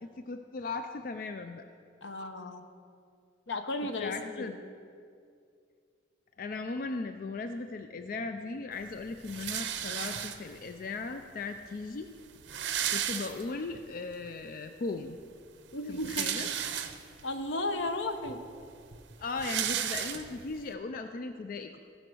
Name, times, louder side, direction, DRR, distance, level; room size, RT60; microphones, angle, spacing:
voice 1, 0.0-1.6 4.0-4.5 6.4-12.1 12.6-15.2 15.9-16.5 19.2-21.8, left 3 dB, 50° left, 7 dB, 0.4 m, -37 dB
voice 2, 2.0-2.7 3.5-4.5 15.7-16.3 17.2-18.4, left 2 dB, 80° left, 7 dB, 0.8 m, -34 dB
sound 1, 9.2-10.7 11.5-11.6 11.8-11.9 12.2-13.8 14.2-14.3 15.7-17.3 17.9-18.0 18.3-20.6, right 9 dB, 80° right, 0.7 m, -34 dB
15.5 x 5.2 x 6.2 m, 2.3 s
head